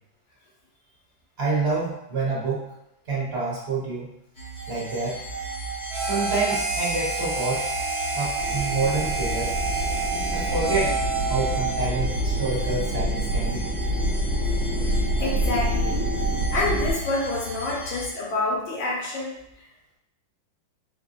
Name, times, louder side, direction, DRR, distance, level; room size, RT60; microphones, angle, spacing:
voice 1, 1.4-2.7 3.1-4.1 4.7-5.2 6.0-7.7 8.1-9.5 10.3-11.0 11.3-13.6, right 3 dB, 40° right, -6 dB, 1.1 m, -27 dB
sound 1, 4.4-18.1, left 1 dB, 50° left, 0.5 m, -33 dB
Harmonica, 5.9-11.9, right 3 dB, 85° right, 1.3 m, -29 dB
sound 2, 8.4-16.9, right 1 dB, 5° right, 0.6 m, -27 dB
voice 2, 15.2-16.0 16.5-19.4, left 2 dB, 80° left, -4 dB, 1.7 m, -27 dB
4.4 x 2.5 x 2.6 m, 0.84 s
omnidirectional pair, 2.1 m